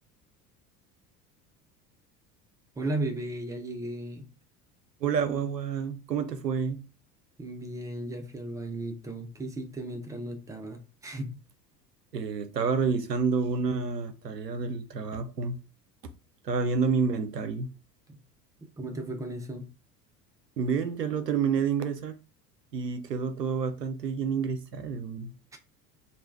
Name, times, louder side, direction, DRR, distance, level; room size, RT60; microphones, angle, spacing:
voice 1, 2.8-4.3 7.4-11.3 18.1-18.2 18.8-19.7 25.5-25.6, right 1 dB, 5° right, 0.4 m, -35 dB
voice 2, 5.0-6.8 12.1-15.6 16.4-17.7 20.6-22.2 22.7-25.3, right 5 dB, 90° right, 0.5 m, -29 dB
3.1 x 2.3 x 3.3 m
figure-of-eight pair, 70°, 48 cm